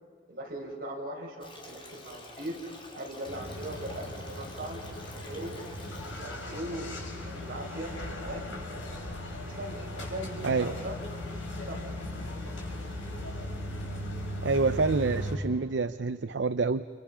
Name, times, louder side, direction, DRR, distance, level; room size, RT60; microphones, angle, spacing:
voice 1, 0.3-2.6 2.9-5.5 6.0-7.0 7.3-7.9 8.2-8.5 9.5-11.0 11.6-11.9, right 1 dB, 50° right, -2 dB, 5.7 m, -39 dB
Stream, 1.4-13.2, left 1 dB, 25° left, 3.2 m, -50 dB
sound 1, 3.3-15.4, left 1 dB, 80° left, 5.2 m, -38 dB
voice 2, 10.4-10.7 14.4-16.8, right 4 dB, 65° right, 12 dB, 0.6 m, -27 dB
30.0 x 29.0 x 5.7 m, 2.1 s
head